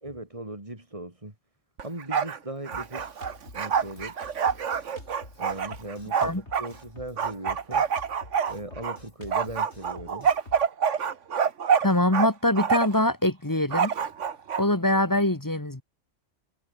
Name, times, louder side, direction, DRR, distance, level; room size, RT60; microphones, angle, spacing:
voice 1, 0.0-1.3 1.8-3.2 3.5-4.3 5.4-7.9 8.5-10.3, right 1 dB, 25° right, 3.9 m, -38 dB
Bark, 1.8-2.4 2.7-6.7 7.2-9.0 9.3-12.3 12.6-13.0 13.7-14.6, right 7 dB, 80° right, 1.6 m, -26 dB
Drum kit, 2.7-10.7, left 2 dB, 65° left, 4.9 m, -48 dB
voice 2, 11.8-13.9 14.6-15.8, left 1 dB, 15° left, 1.6 m, -23 dB
omnidirectional pair, 1.3 m